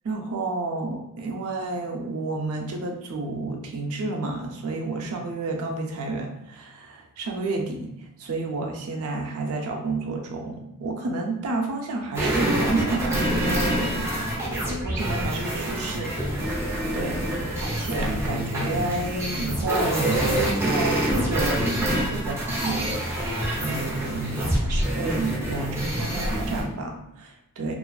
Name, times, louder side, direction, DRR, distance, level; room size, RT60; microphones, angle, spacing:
voice 1, 0.0-16.6 16.9-17.1 17.6-27.7, right 3 dB, 70° right, 2 dB, 0.4 m, -30 dB
sound 1, 12.1-26.6, right 1 dB, 10° right, 0.6 m, -26 dB
2.4 x 2.3 x 2.2 m, 0.90 s
head